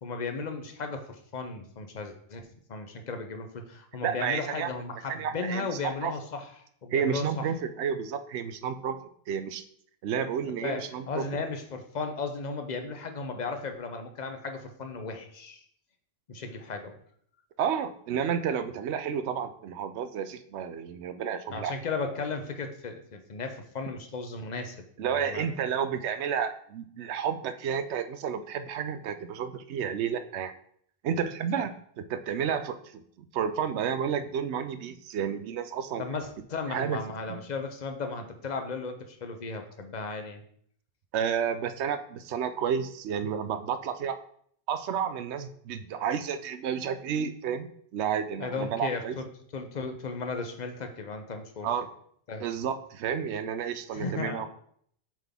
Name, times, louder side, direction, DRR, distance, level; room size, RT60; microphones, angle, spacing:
voice 1, 0.0-6.5 6.8-7.5 10.4-15.6 16.3-17.0 21.5-25.5 31.6-31.7 36.0-40.4 48.4-49.3 49.5-51.7 52.3-52.5 53.9-54.5, left 4 dB, 45° left, 6 dB, 0.8 m, -35 dB
voice 2, 4.0-4.7 5.1-6.1 6.9-9.0 9.3-9.6 10.0-11.2 17.6-21.7 25.0-30.5 31.0-32.8 33.3-36.0 36.7-37.0 41.1-44.2 44.7-49.1 51.6-51.9 52.4-54.5, right 7 dB, 80° right, 10 dB, 0.9 m, -31 dB
7.4 x 3.8 x 3.5 m, 0.64 s
omnidirectional pair, 1.1 m